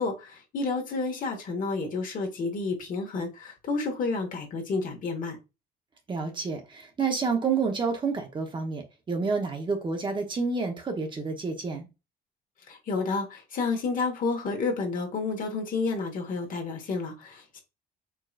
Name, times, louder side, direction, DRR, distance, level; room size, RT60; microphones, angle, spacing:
voice 1, 0.0-5.4 12.7-17.6, left 4 dB, 55° left, 1.4 m, -30 dB
voice 2, 6.1-11.9, right 4 dB, 30° right, 0.9 m, -29 dB
4.7 x 2.9 x 2.4 m
cardioid pair, 110°, 17 cm